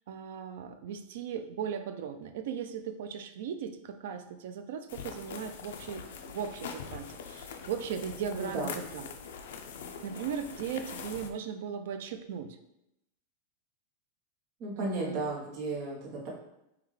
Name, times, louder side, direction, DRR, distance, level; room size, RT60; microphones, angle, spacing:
voice 1, 0.1-9.1 10.0-12.6 14.8-15.2, right 7 dB, 55° right, 8 dB, 0.4 m, -38 dB
sound 1, 4.9-11.3, left 6 dB, 65° left, 0.4 m, -43 dB
voice 2, 8.3-8.7 14.6-16.3, right 2 dB, 30° right, -2 dB, 0.8 m, -34 dB
5.5 x 2.3 x 3.2 m, 0.85 s
supercardioid pair, 180°, 0 cm